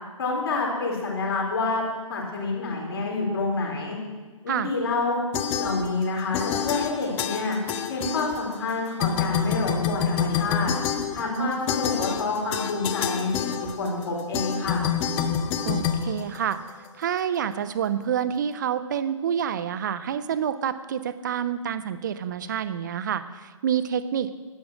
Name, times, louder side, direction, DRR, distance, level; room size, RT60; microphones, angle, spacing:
voice 1, 0.2-1.8 2.1-4.0 4.4-5.2 5.6-7.6 7.9-10.7 11.1-14.8, left 3 dB, 45° left, -1 dB, 4.0 m, -28 dB
sound 1, 5.3-6.1 6.3-8.7 9.0-16.9, left 8 dB, 10° left, 0.4 m, -28 dB
voice 2, 15.7-16.6 17.0-24.3, right 8 dB, 35° right, 13 dB, 0.6 m, -28 dB
11.5 x 9.0 x 6.2 m, 1.3 s
figure-of-eight pair, 135°, 17 cm